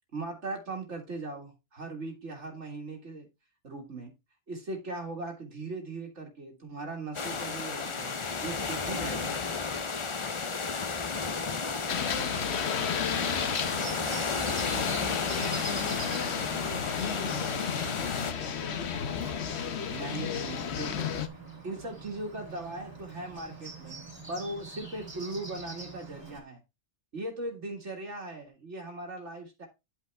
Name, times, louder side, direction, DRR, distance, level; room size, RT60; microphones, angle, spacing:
voice 1, 0.1-3.3 3.6-4.1 4.5-8.1 8.4-9.4 19.9-21.1 21.6-26.6 27.1-29.7, right 2 dB, 75° right, 1 dB, 2.1 m, -39 dB
sound 1, 7.1-18.3, left 4 dB, 30° left, 0.6 m, -33 dB
voice 2, 11.2-12.2 13.1-18.0, right 2 dB, 55° right, 3 dB, 2.1 m, -51 dB
sound 2, 11.9-21.3, left 7 dB, 65° left, 1.1 m, -33 dB
Bird, 13.2-26.4, right 3 dB, 20° right, 2.5 m, -44 dB
10.0 x 5.5 x 3.4 m, 0.25 s
omnidirectional pair, 1.2 m